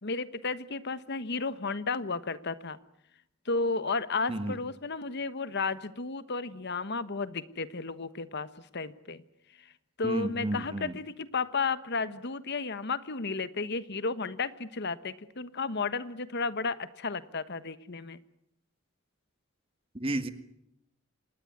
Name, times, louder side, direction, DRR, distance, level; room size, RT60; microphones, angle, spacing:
voice 1, 0.0-2.8 3.4-9.2 9.6-9.7 10.0-18.2, left 4 dB, 55° left, 13 dB, 1.2 m, -33 dB
voice 2, 10.0-10.9 19.9-20.3, right 1 dB, 30° right, 10 dB, 1.9 m, -32 dB
26.5 x 20.0 x 9.6 m, 0.77 s
head